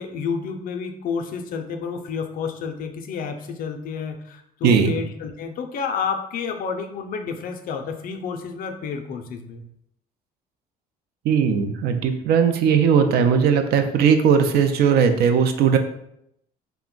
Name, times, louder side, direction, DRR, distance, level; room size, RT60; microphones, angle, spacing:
voice 1, 0.0-9.6, left 6 dB, 55° left, 6 dB, 0.4 m, -30 dB
voice 2, 4.6-4.9 11.2-15.8, right 7 dB, 70° right, 7 dB, 0.4 m, -18 dB
2.4 x 2.1 x 3.7 m, 0.76 s
cardioid pair, 110°, 17 cm